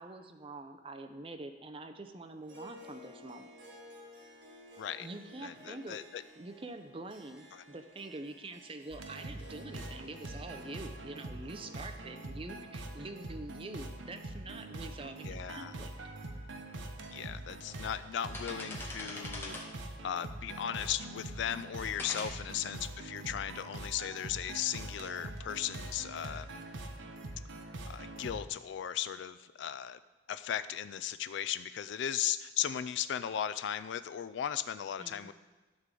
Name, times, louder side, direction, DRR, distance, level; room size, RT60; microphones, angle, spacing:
voice 1, 0.0-3.5 5.0-6.0 6.4-15.9 35.0-35.3, right 2 dB, 30° right, 6 dB, 0.6 m, -45 dB
Harp, 2.4-15.0, left 1 dB, 60° right, 1.9 m, -56 dB
voice 2, 5.4-6.2 7.5-7.6 15.3-15.7 17.1-19.6 20.0-26.5 27.9-30.0 30.3-35.3, left 10 dB, 70° left, 13 dB, 0.3 m, -37 dB
sound 1, 8.9-28.5, right 2 dB, 80° right, 1.0 m, -44 dB
sound 2, 16.7-16.8 17.4-17.8 18.1-19.8 20.6-21.3 22.0-22.2, left 2 dB, 15° left, 1.1 m, -43 dB
11.5 x 3.8 x 7.5 m, 1.2 s
head